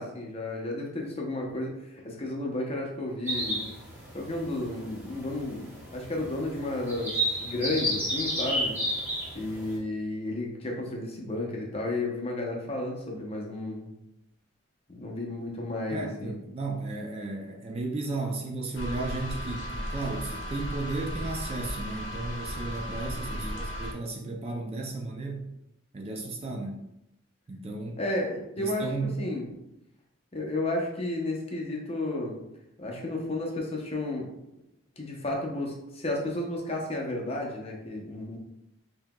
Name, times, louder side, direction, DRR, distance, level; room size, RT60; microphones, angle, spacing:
voice 1, 0.0-3.7 4.1-8.8 9.3-13.9 14.9-16.4 23.2-23.6 28.0-29.4 30.3-32.4 32.8-34.3 35.0-38.4, left 2 dB, 30° left, 0 dB, 0.7 m, -32 dB
sound 1, 3.3-9.8, equal, 10° right, 0.8 m, -32 dB
voice 2, 15.9-25.5 25.9-26.8 27.5-28.0 28.6-29.2, right 2 dB, 30° right, 2 dB, 0.4 m, -34 dB
sound 2, 18.8-23.9, equal, 60° left, 0.8 m, -35 dB
5.6 x 2.8 x 2.3 m, 0.84 s
head